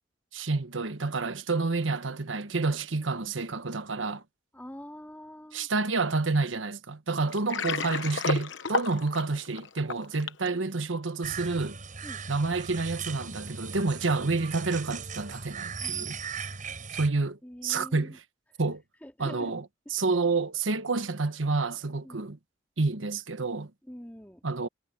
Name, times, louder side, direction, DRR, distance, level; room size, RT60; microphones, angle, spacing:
voice 1, 0.3-4.2 5.5-11.8 12.3-16.2 16.9-18.2 18.6-18.8 19.2-19.6 19.9-22.4 22.8-23.7 24.4-24.7, right 3 dB, 90° right, 1.3 m, -29 dB
voice 2, 4.5-5.7 12.0-12.2 15.8-16.2 17.4-18.1 19.0-19.6 22.0-22.2 23.8-24.4, equal, 10° left, 4.0 m, -45 dB
Water, 7.3-10.5, left 5 dB, 70° left, 1.0 m, -31 dB
sound 1, 11.2-17.1, right 5 dB, 45° right, 6.5 m, -38 dB
head